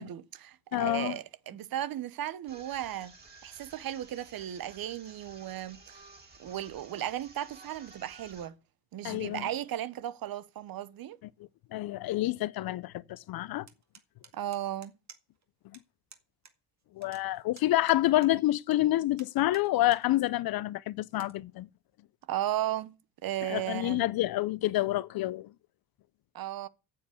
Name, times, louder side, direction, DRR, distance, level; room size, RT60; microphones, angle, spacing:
voice 1, 0.0-3.1 3.4-6.0 6.4-8.6 8.9-11.2 14.3-15.0 22.3-23.0 23.2-24.1 26.3-26.7, right 12 dB, 55° right, 1.0 m, -35 dB
voice 2, 0.7-1.1 9.0-9.5 11.7-13.7 16.9-21.7 23.4-25.5, left 16 dB, 60° left, 0.6 m, -28 dB
sound 1, 2.5-8.5, right 3 dB, 25° right, 3.6 m, -54 dB
sound 2, 13.7-15.4 15.7-15.8 16.1-16.5 16.8-18.8 19.2-20.0 20.5-20.6 21.1-21.3, right 6 dB, 40° right, 2.1 m, -54 dB
8.7 x 7.6 x 8.2 m
supercardioid pair, 70°, 41 cm